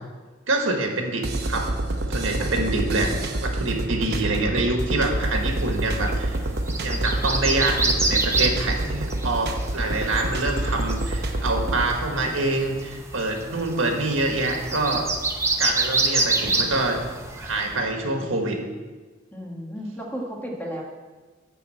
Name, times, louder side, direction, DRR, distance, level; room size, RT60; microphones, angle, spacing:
voice 1, 0.5-1.7 2.1-3.1 3.4-6.4 6.8-15.1 15.6-17.0 17.4-18.6, right 2 dB, 85° right, 2 dB, 1.6 m, -26 dB
sound 1, 1.2-11.9, right 1 dB, 55° right, 0.9 m, -27 dB
sound 2, 5.3-17.7, right 3 dB, 15° right, 0.7 m, -28 dB
voice 2, 19.3-20.8, equal, 10° left, -2 dB, 1.5 m, -33 dB
11.0 x 4.0 x 7.6 m, 1.4 s
head